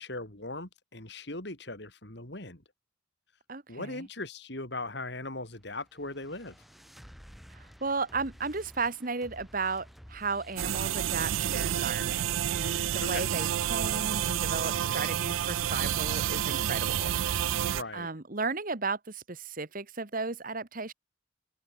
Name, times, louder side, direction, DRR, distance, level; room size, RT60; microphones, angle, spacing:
voice 1, 0.0-2.6 3.7-6.6 13.0-13.3 17.6-18.1, left 2 dB, 55° left, 4.3 m, -39 dB
voice 2, 3.5-4.1 7.5-17.1 17.4-20.9, right 4 dB, 45° right, 1.5 m, -35 dB
sound 1, 5.4-18.1, equal, ahead, 6.7 m, -52 dB
sound 2, 10.6-17.8, right 10 dB, 85° right, 0.4 m, -29 dB
head